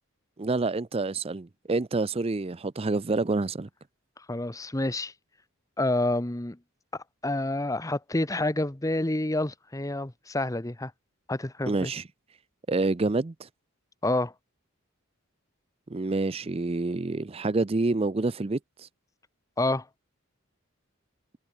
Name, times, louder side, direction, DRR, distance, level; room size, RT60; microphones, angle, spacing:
voice 1, 0.4-3.7 11.7-12.1 12.7-13.5 15.9-18.9, right 3 dB, 25° right, 0.5 m, -28 dB
voice 2, 4.3-5.1 5.8-6.6 7.2-10.9 11.3-11.9 14.0-14.3 19.6-19.8, left 2 dB, 15° left, 0.9 m, -28 dB
head